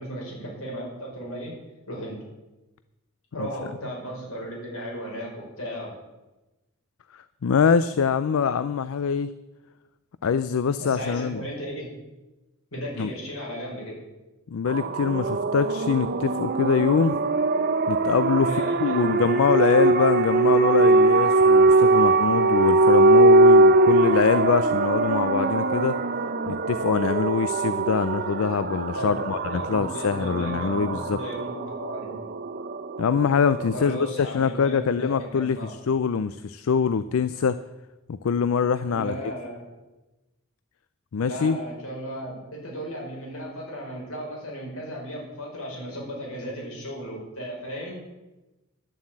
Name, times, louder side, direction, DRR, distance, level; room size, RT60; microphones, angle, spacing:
voice 1, 0.0-1.5 1.9-2.2 3.3-5.9 10.8-11.9 12.7-14.0 18.3-19.1 28.9-32.2 33.7-35.7 38.8-39.8 41.2-48.0, equal, 90° left, -2 dB, 5.4 m, -35 dB
voice 2, 7.4-9.3 10.2-11.4 13.0-13.1 14.5-17.2 17.9-18.5 18.8-26.0 26.5-31.2 33.0-37.6 38.1-39.1 41.1-41.6, left 6 dB, 70° left, 13 dB, 0.4 m, -24 dB
sound 1, 14.7-34.1, right 2 dB, 45° right, 0.7 m, -21 dB
11.0 x 7.4 x 8.6 m, 1.1 s
head